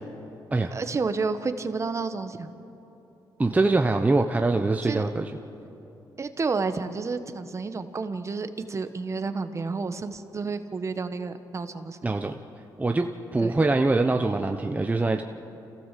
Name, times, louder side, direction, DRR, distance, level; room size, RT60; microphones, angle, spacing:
voice 1, 0.7-2.5 4.8-5.0 6.2-12.1 13.4-13.5, right 4 dB, 35° right, 10 dB, 1.3 m, -30 dB
voice 2, 3.4-5.3 12.0-12.4 12.8-15.2, right 2 dB, 20° right, 4 dB, 0.9 m, -23 dB
27.0 x 16.0 x 7.6 m, 2.9 s
cardioid pair, 90°, 8 cm